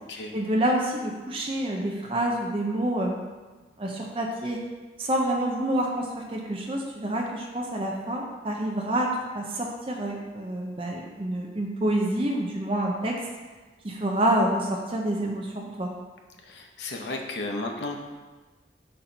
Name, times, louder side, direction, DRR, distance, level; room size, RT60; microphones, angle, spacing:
voice 1, 0.3-3.2 3.8-4.6 5.0-13.2 13.8-15.9, right 1 dB, 30° right, -1 dB, 0.6 m, -27 dB
voice 2, 16.4-18.0, left 2 dB, 80° left, 2 dB, 0.7 m, -33 dB
4.3 x 4.2 x 5.1 m, 1.3 s
head